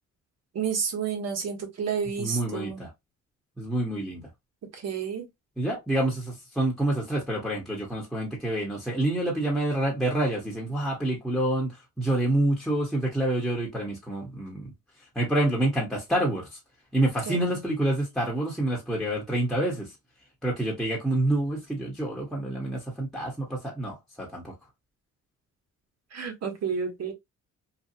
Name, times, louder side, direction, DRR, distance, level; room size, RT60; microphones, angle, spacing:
voice 1, 0.5-2.9 4.7-5.3 17.3-17.5 26.1-27.1, right 6 dB, 55° right, 1.3 m, -30 dB
voice 2, 2.2-2.9 3.6-4.2 5.6-14.7 15.1-16.6 16.9-19.9 20.4-24.5, right 1 dB, ahead, 1.1 m, -27 dB
2.8 x 2.3 x 2.6 m
cardioid pair, 90°, 30 cm